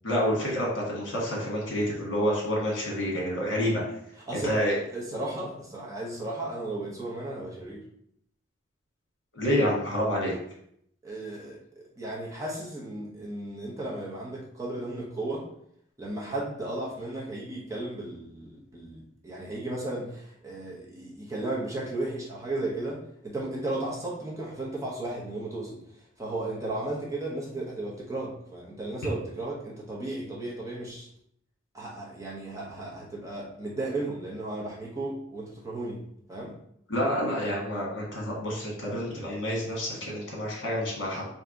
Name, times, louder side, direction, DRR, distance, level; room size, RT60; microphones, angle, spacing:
voice 1, 0.0-3.8 4.4-4.8 9.3-10.3 36.9-41.2, equal, 65° left, -3 dB, 1.3 m, -28 dB
voice 2, 4.3-4.6 4.9-7.8 11.0-15.5 16.0-25.8 26.2-31.1 31.7-36.0 36.3-36.5, right 2 dB, 15° right, -4 dB, 0.8 m, -35 dB
3.5 x 2.7 x 3.7 m, 0.71 s
head